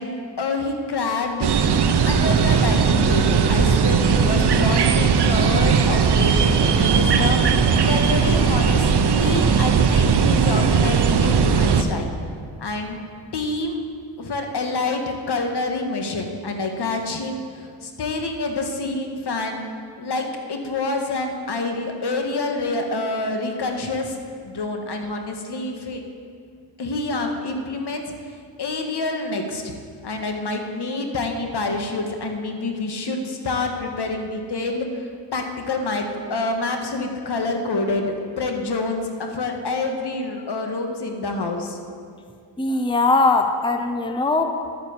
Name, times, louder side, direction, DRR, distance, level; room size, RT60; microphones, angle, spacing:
voice 1, 0.0-1.5 2.0-12.1 12.6-13.0 13.3-13.8 14.2-19.6 20.0-24.2 24.4-26.0 26.8-28.1 28.6-29.7 30.0-41.8, left 3 dB, 55° left, 4 dB, 1.8 m, -27 dB
sound 1, 1.4-11.8, right 6 dB, 55° right, 1.0 m, -18 dB
voice 2, 42.6-44.6, left 3 dB, 10° left, 6 dB, 0.8 m, -20 dB
10.5 x 8.7 x 7.3 m, 2.2 s
cardioid pair, 70°, 48 cm